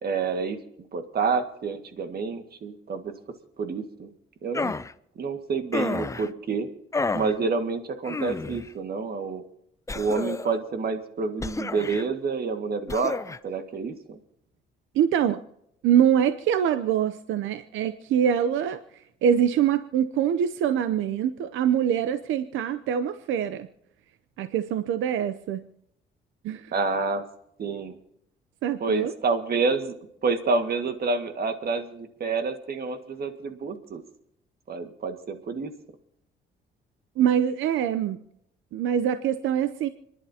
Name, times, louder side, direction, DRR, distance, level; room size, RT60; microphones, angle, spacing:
voice 1, 0.0-0.6 0.9-3.1 3.6-4.1 4.4-4.7 5.2-6.7 7.1-9.4 9.9-13.2 13.4-14.2 26.7-27.2 27.6-28.0 28.8-34.0 34.7-35.7, right 4 dB, 50° right, 7 dB, 1.9 m, -28 dB
sound 1, 4.5-4.9 5.7-6.3 6.9-7.3 8.0-8.7 9.9-10.6 11.4-12.1 12.9-13.4, left 3 dB, 15° left, 0.5 m, -30 dB
voice 2, 14.9-15.4 15.8-23.7 24.4-25.6 26.4-26.7 28.6-29.1 37.2-38.2 38.7-39.9, right 9 dB, 85° right, 11 dB, 0.7 m, -24 dB
29.0 x 11.0 x 2.8 m, 0.78 s
cardioid pair, 90°, 20 cm